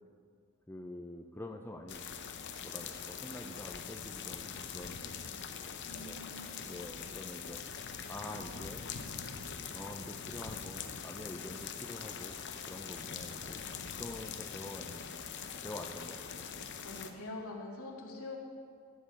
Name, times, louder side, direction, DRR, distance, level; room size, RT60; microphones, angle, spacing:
voice 1, 0.7-2.0 2.5-5.5 6.0-7.6 8.1-8.9 9.7-12.4 12.7-13.7 14.0-15.0 15.6-16.5, left 1 dB, 10° left, 3 dB, 0.5 m, -46 dB
sound 1, 1.9-17.1, left 7 dB, 55° left, 0.7 m, -43 dB
voice 2, 5.8-6.6 16.8-18.4, left 2 dB, 75° left, -1 dB, 2.0 m, -44 dB
14.0 x 5.3 x 7.3 m, 2.1 s
head